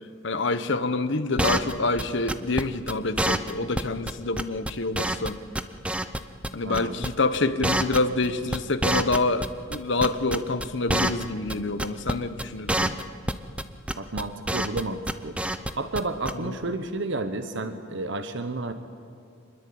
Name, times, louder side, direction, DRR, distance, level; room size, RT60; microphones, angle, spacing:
voice 1, 0.2-5.4 6.5-12.9 16.3-16.5, left 3 dB, 60° left, 11 dB, 1.2 m, -27 dB
sound 1, 1.4-1.7 2.0-2.1 2.3-2.6 2.9-3.0 3.2-3.5 3.8-3.9 4.1-4.2 4.4-5.3 5.6-6.5 6.7-7.1 7.3-9.5 9.7-11.2 11.5-11.6 11.8-12.1 12.4-12.5 12.7-13.0 13.3-13.6 13.9-14.8 15.1-15.7 16.0-16.1 16.3-16.4, right 1 dB, 5° right, 0.7 m, -26 dB
voice 2, 6.6-7.0 14.0-15.4 15.8-18.7, right 2 dB, 60° right, 9 dB, 1.1 m, -31 dB
25.0 x 21.0 x 8.7 m, 2.5 s
head